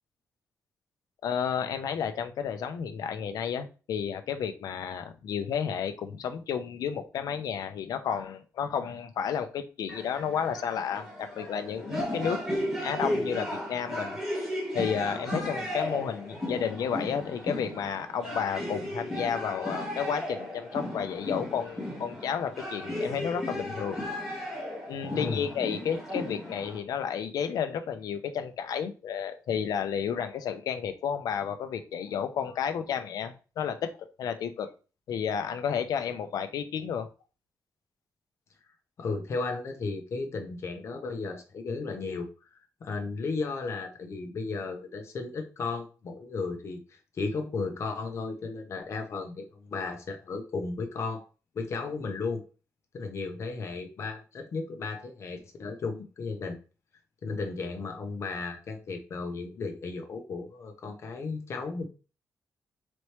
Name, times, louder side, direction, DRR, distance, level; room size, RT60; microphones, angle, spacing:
voice 1, 1.2-12.4 12.8-24.0 24.9-34.7 35.1-37.1, left 7 dB, 90° left, 9 dB, 0.6 m, -32 dB
sound 1, 9.9-26.8, left 1 dB, 5° right, 1.7 m, -35 dB
voice 2, 25.1-25.4 39.0-42.3 42.8-51.2 51.5-52.4 52.9-56.6 57.2-61.9, left 4 dB, 50° left, 4 dB, 0.9 m, -34 dB
4.1 x 3.1 x 3.2 m, 0.34 s
wide cardioid pair, 170°, 6 cm